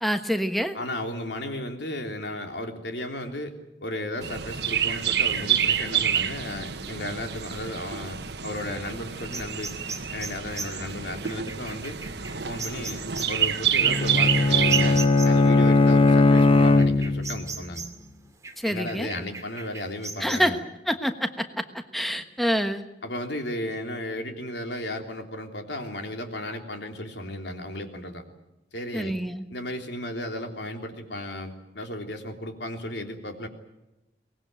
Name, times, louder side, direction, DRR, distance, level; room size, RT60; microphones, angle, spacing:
voice 1, 0.0-0.7 18.6-19.1 20.2-20.6 20.9-22.8 28.9-29.4, equal, ahead, 7 dB, 1.2 m, -27 dB
voice 2, 0.7-3.5 3.8-9.7 10.1-12.0 12.4-13.0 13.3-17.9 18.7-20.6 23.0-28.2 28.7-29.2 29.5-33.5, left 1 dB, 75° left, 4 dB, 3.4 m, -34 dB
Chirp tweet, 4.2-15.0, right 8 dB, 70° right, 1.4 m, -27 dB
sound 1, 9.3-15.5 16.1-18.1 18.4-20.4, right 3 dB, 20° right, 2.4 m, -39 dB
Bowed string instrument, 13.8-17.4, left 2 dB, 35° left, 1.1 m, -19 dB
23.5 x 19.5 x 9.1 m, 0.94 s
head